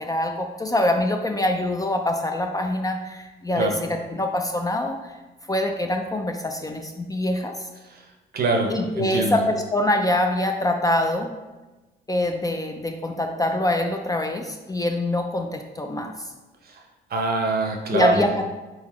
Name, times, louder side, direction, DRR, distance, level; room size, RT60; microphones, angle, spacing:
voice 1, 0.0-5.1 5.5-7.7 8.7-11.3 12.1-16.3 17.9-18.4, left 1 dB, 20° left, 4 dB, 0.4 m, -24 dB
voice 2, 8.3-9.4 17.1-18.3, right 3 dB, 50° right, 3 dB, 0.8 m, -23 dB
3.9 x 3.8 x 3.0 m, 1.1 s
cardioid pair, 90°, 20 cm